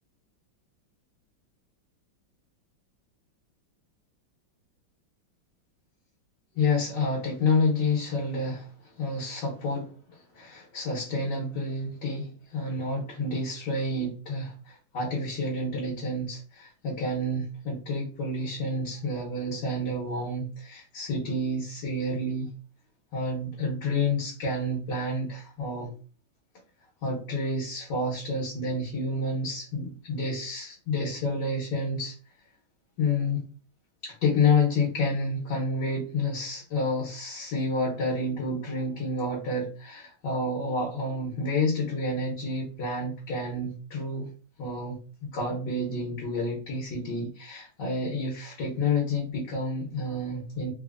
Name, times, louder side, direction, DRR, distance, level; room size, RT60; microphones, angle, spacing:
voice 1, 6.5-22.5 23.1-25.9 27.0-32.1 33.0-33.4 34.0-44.3 44.6-50.7, left 2 dB, 65° left, -5 dB, 1.5 m, -29 dB
4.0 x 2.7 x 2.4 m, 0.37 s
omnidirectional pair, 2.2 m